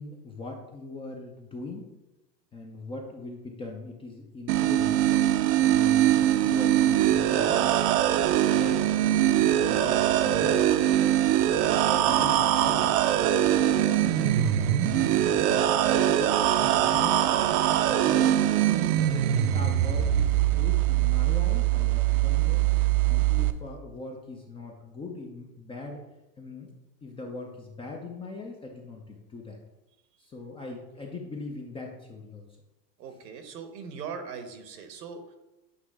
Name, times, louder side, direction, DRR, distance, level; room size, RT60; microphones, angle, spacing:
voice 1, 0.0-1.9 2.5-5.1 5.6-7.7 8.4-10.7 11.3-14.8 15.3-18.4 18.8-19.3 19.5-22.6 23.1-26.0 26.4-26.7 27.0-29.6 30.2-32.5, left 3 dB, 15° left, 0 dB, 0.3 m, -40 dB
sound 1, 4.5-23.5, right 12 dB, 60° right, 0.6 m, -23 dB
voice 2, 33.0-35.4, right 6 dB, 80° right, 7 dB, 1.2 m, -40 dB
8.2 x 2.8 x 4.7 m, 0.97 s
hypercardioid pair, 110°, 49 cm